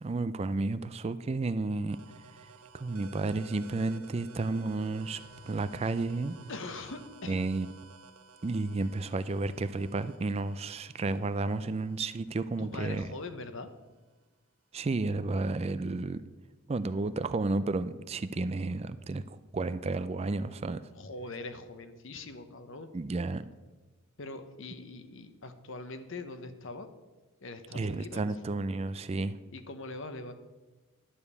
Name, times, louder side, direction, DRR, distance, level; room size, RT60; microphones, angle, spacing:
voice 1, 0.0-2.0 2.7-5.2 5.5-6.4 7.3-7.7 8.4-13.1 14.7-16.2 16.7-20.8 22.9-23.4 27.7-29.4, right 3 dB, 30° right, 13 dB, 0.3 m, -32 dB
sound 1, 1.9-13.3, right 4 dB, 85° right, 0.8 m, -54 dB
voice 2, 6.5-7.4 12.6-13.7 20.9-22.9 24.2-26.9 27.4-28.4 29.5-30.3, left 2 dB, 60° left, 9 dB, 0.9 m, -42 dB
11.5 x 5.3 x 8.2 m, 1.2 s
head